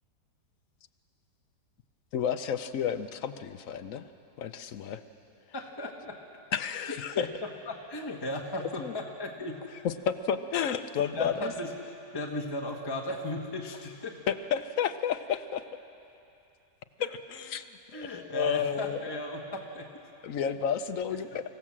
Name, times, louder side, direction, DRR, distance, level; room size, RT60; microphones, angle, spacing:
voice 1, 2.1-4.1 4.4-5.0 6.5-7.3 8.8-8.9 9.8-11.5 14.3-15.6 17.0-19.0 20.2-21.4, left 8 dB, 60° left, 9 dB, 1.0 m, -31 dB
voice 2, 5.5-6.2 7.1-9.6 11.1-14.1 17.0-17.1 17.9-19.9 21.3-21.4, left 1 dB, 15° left, 1 dB, 1.2 m, -36 dB
25.0 x 15.5 x 7.4 m, 2.8 s
omnidirectional pair, 1.9 m